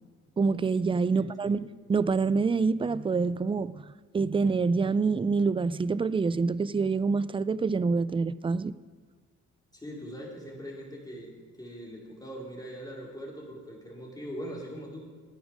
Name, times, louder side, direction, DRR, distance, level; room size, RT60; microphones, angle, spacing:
voice 1, 0.4-1.6 1.9-3.8 4.1-8.7, right 4 dB, 20° right, 17 dB, 0.4 m, -26 dB
voice 2, 1.1-1.6 9.7-11.3 11.6-15.0, equal, 15° left, -3 dB, 4.3 m, -41 dB
17.0 x 10.5 x 5.2 m, 1.5 s
cardioid pair, 90°, 30 cm